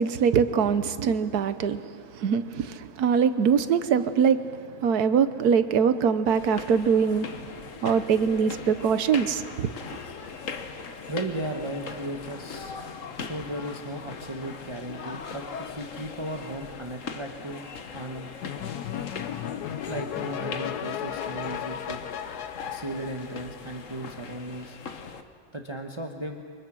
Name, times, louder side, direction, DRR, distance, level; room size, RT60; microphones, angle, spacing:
voice 1, 0.0-4.5 4.8-7.3 7.8-9.7, right 6 dB, 80° right, 12 dB, 1.4 m, -23 dB
sound 1, 6.3-25.2, left 5 dB, 55° left, 1.5 m, -40 dB
voice 2, 11.1-12.7 13.2-17.6 17.9-18.3 19.8-22.0 22.7-24.8 25.5-26.4, right 1 dB, 20° right, 2 dB, 1.1 m, -36 dB
sound 2, 18.4-23.9, left 10 dB, 85° left, 1.4 m, -35 dB
29.0 x 24.5 x 6.2 m, 2.2 s
omnidirectional pair, 1.6 m